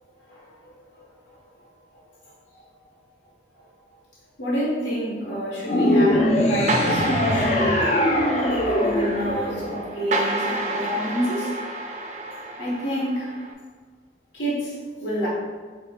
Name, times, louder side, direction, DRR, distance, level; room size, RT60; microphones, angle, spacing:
voice 1, 0.3-1.4 1.9-2.6 3.6-3.7 4.4-7.9 8.7-11.6 12.6-13.3 14.3-15.3, equal, 80° left, -5 dB, 1.3 m, -29 dB
sound 1, 5.7-10.2, left 1 dB, 35° left, 0.4 m, -21 dB
sound 2, 6.7-13.5, right 2 dB, 40° right, 0.4 m, -30 dB
5.4 x 2.9 x 2.3 m, 1.5 s
head